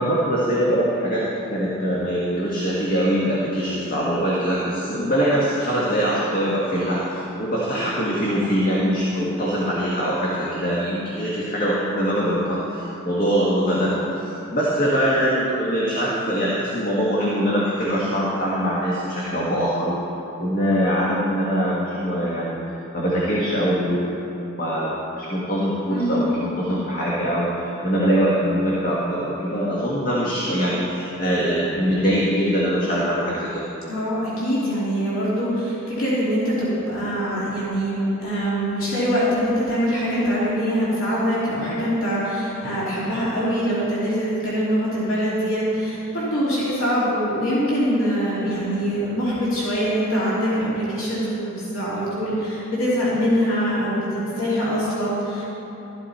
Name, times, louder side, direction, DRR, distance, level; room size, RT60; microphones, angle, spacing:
voice 1, 0.0-20.0 20.4-22.6 22.9-24.1 24.6-33.6, equal, 40° left, -6 dB, 1.7 m, -23 dB
voice 2, 25.9-26.3 33.9-55.4, equal, 70° left, -9 dB, 2.9 m, -23 dB
13.5 x 12.0 x 4.3 m, 3.0 s
head